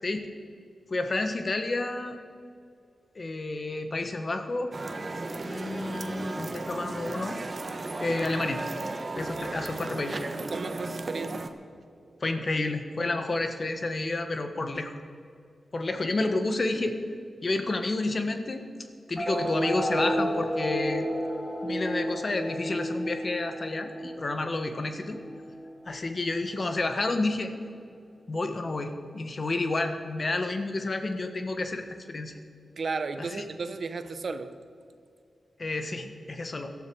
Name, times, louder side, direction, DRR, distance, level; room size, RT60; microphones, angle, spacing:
voice 1, 0.0-0.3 0.9-2.2 3.1-4.7 5.4-7.4 8.0-8.6 9.2-10.2 12.2-14.9 15.7-17.0 17.4-18.6 19.1-21.1 21.6-25.2 25.9-27.5 28.3-32.3 33.2-33.4 35.6-36.7, left 2 dB, 50° left, 7 dB, 1.6 m, -30 dB
sound 1, 4.7-11.5, right 2 dB, 45° right, 1.3 m, -35 dB
voice 2, 10.5-11.5 12.0-12.2 32.8-34.5, right 4 dB, 65° right, 10 dB, 1.0 m, -34 dB
sound 2, 19.2-26.1, equal, 10° left, 2.5 m, -32 dB
17.5 x 12.5 x 4.9 m, 2.3 s
cardioid pair, 40°, 0 cm